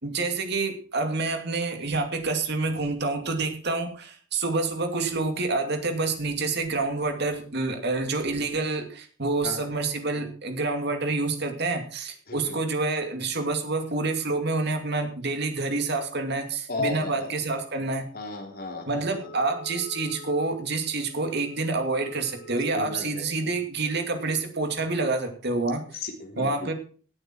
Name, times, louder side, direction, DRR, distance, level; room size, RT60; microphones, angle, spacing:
voice 1, 0.0-18.1 18.9-26.0 26.4-26.7, right 3 dB, 50° right, 5 dB, 2.5 m, -28 dB
voice 2, 16.7-17.3 18.1-18.8 22.7-23.2 26.0-26.5, left 3 dB, 45° left, 2 dB, 3.5 m, -34 dB
Wind instrument woodwind instrument, 19.2-23.3, left 1 dB, 80° left, 3.4 m, -48 dB
18.0 x 8.8 x 4.5 m, 0.42 s
head